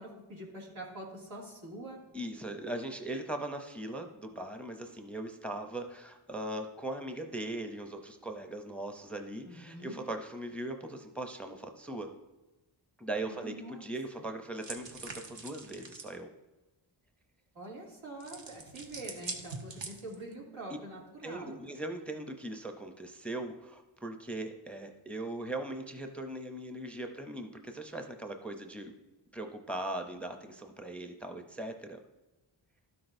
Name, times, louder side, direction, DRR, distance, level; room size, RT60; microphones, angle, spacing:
voice 1, 0.0-2.0 9.4-10.0 13.3-13.9 17.5-21.6, right 1 dB, 85° right, -5 dB, 2.5 m, -45 dB
voice 2, 2.1-12.1 13.0-16.3 21.2-28.9 29.3-32.0, right 1 dB, 5° left, 5 dB, 0.6 m, -39 dB
sound 1, 14.6-16.2 18.2-20.3, right 3 dB, 65° right, 1.0 m, -43 dB
12.5 x 6.0 x 2.6 m, 1.1 s
wide cardioid pair, 95°, 47 cm